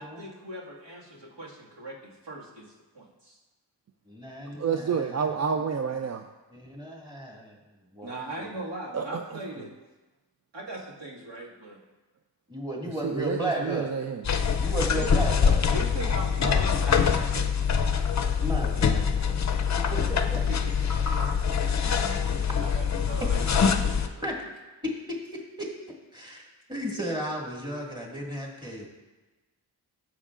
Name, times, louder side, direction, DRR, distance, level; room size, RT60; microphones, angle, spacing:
voice 1, 0.0-3.4 8.0-9.7 10.5-11.8 15.0-15.1 15.7-17.7 20.5-20.7 21.0-21.2 22.6-24.2, right 2 dB, 80° right, -4 dB, 2.1 m, -39 dB
voice 2, 4.1-5.2 6.5-7.6 7.9-8.5 12.5-13.9 14.6-15.6 18.4-19.5 19.9-20.4 24.2-24.4 24.8-25.7 26.1-26.4 26.7-28.9, right 1 dB, 10° right, -2 dB, 1.9 m, -34 dB
voice 3, 4.6-6.2 8.9-9.2 13.0-14.2, right 6 dB, 40° right, 5 dB, 0.4 m, -29 dB
sound 1, 14.2-24.1, left 6 dB, 45° left, 0.6 m, -24 dB
15.5 x 7.2 x 2.5 m, 1.2 s
wide cardioid pair, 120°, 41 cm